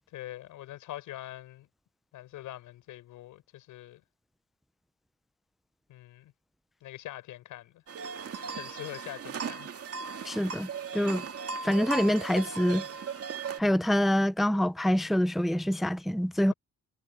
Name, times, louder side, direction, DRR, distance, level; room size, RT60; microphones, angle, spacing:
voice 1, 0.1-1.7 2.1-4.0 5.9-6.3 6.8-7.8 8.5-9.7, left 14 dB, 90° left, 6.7 m, -43 dB
sound 1, 7.9-13.6, right 5 dB, 50° right, 2.4 m, -37 dB
voice 2, 10.2-11.2 11.6-12.8 13.6-16.5, equal, ahead, 0.6 m, -26 dB
cardioid pair, 90°, 30 cm